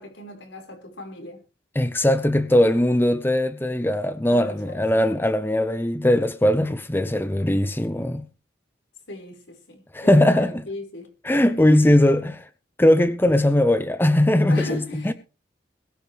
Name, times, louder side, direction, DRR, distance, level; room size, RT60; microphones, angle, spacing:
voice 1, 0.0-1.4 4.3-4.8 9.1-11.1 14.5-15.1, left 2 dB, 80° left, 5.5 m, -37 dB
voice 2, 1.8-8.2 9.9-10.6 11.2-12.4 12.8-15.1, left 1 dB, 10° left, 0.7 m, -20 dB
21.5 x 9.4 x 3.5 m
head